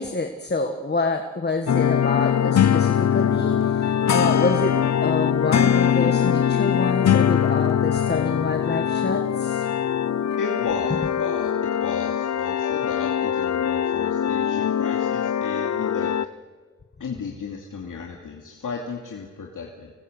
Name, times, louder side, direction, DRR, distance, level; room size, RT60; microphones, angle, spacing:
voice 1, 0.0-9.6, left 3 dB, 35° left, 5 dB, 1.6 m, -27 dB
sound 1, 1.7-16.3, left 9 dB, 60° left, 0.6 m, -22 dB
voice 2, 10.4-16.1 17.0-19.9, left 5 dB, 80° left, -1 dB, 2.8 m, -34 dB
26.0 x 19.0 x 8.2 m, 1.5 s
wide cardioid pair, 95°, 31 cm